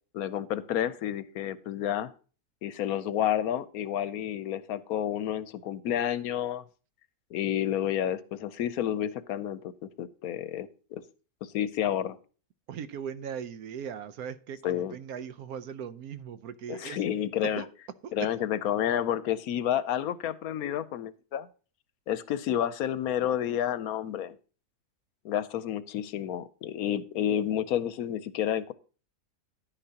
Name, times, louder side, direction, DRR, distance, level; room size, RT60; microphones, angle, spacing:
voice 1, 0.1-2.1 2.6-6.6 7.3-9.7 10.0-11.0 11.4-12.2 14.6-15.0 16.7-17.6 18.1-21.5 22.1-24.4 25.2-28.7, left 10 dB, 75° left, 1.1 m, -30 dB
voice 2, 12.7-17.0 17.4-17.7 18.0-18.3, right 8 dB, 75° right, 1.1 m, -39 dB
10.5 x 10.0 x 2.8 m
omnidirectional pair, 1.6 m